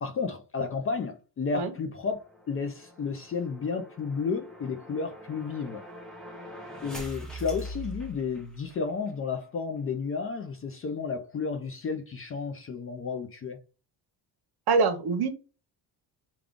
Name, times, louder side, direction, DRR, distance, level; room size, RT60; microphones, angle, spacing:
voice 1, 0.0-5.8 6.8-13.6, left 5 dB, 30° left, 0.4 m, -32 dB
sound 1, 2.0-8.8, equal, ahead, 0.8 m, -43 dB
voice 2, 14.7-15.3, right 4 dB, 60° right, 0.9 m, -24 dB
3.6 x 2.3 x 3.5 m
cardioid pair, 135°, 44 cm